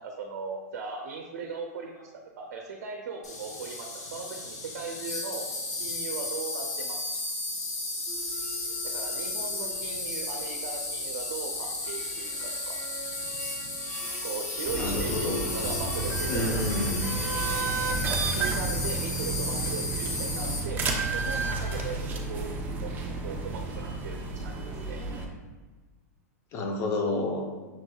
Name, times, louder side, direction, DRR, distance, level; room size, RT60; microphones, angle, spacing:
voice 1, 0.0-5.5 5.8-7.0 8.9-12.8 14.2-16.5 17.5-17.9 18.4-20.8 21.1-22.9 23.2-25.0, right 4 dB, 75° right, 2 dB, 0.5 m, -38 dB
Insect, 3.2-20.6, left 2 dB, 85° left, 1.1 m, -34 dB
sound 1, 8.1-17.7, left 2 dB, 15° left, 1.0 m, -43 dB
sound 2, 14.6-25.2, right 3 dB, 20° right, 0.5 m, -31 dB
voice 2, 14.7-15.4 16.3-17.0 26.5-27.5, left 2 dB, 35° left, 2 dB, 0.6 m, -29 dB
5.9 x 2.8 x 2.3 m, 1.3 s
hypercardioid pair, 130°, 9 cm